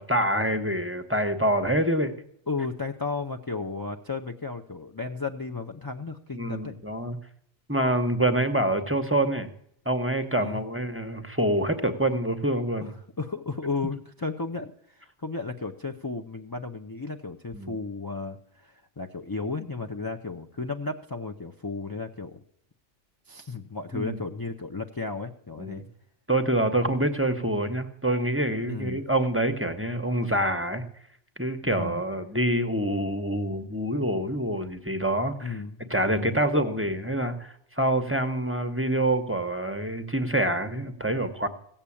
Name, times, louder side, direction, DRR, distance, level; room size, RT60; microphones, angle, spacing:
voice 1, 0.0-2.1 6.3-7.2 7.7-9.5 9.8-12.9 17.5-17.8 23.9-24.2 25.6-25.8 26.3-30.8 31.4-35.6 35.9-41.5, right 1 dB, 10° right, 7 dB, 0.9 m, -26 dB
voice 2, 2.5-6.7 10.4-10.6 12.8-12.9 13.2-22.4 23.3-25.8 28.7-29.1 31.6-32.0 35.4-36.4, left 4 dB, 25° left, 4 dB, 0.5 m, -34 dB
16.5 x 7.3 x 8.5 m, 0.66 s
omnidirectional pair, 1.2 m